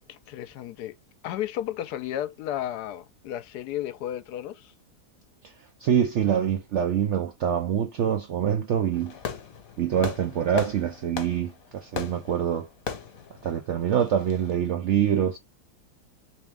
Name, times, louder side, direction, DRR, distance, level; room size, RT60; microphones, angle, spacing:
voice 1, 0.1-0.9 1.2-4.7, left 12 dB, 80° left, 1.1 m, -33 dB
voice 2, 5.8-9.2 9.8-12.7 13.4-15.4, right 9 dB, 70° right, 0.6 m, -25 dB
Fireworks, 8.9-14.5, left 6 dB, 60° left, 1.3 m, -38 dB
3.5 x 3.0 x 3.3 m
omnidirectional pair, 1.7 m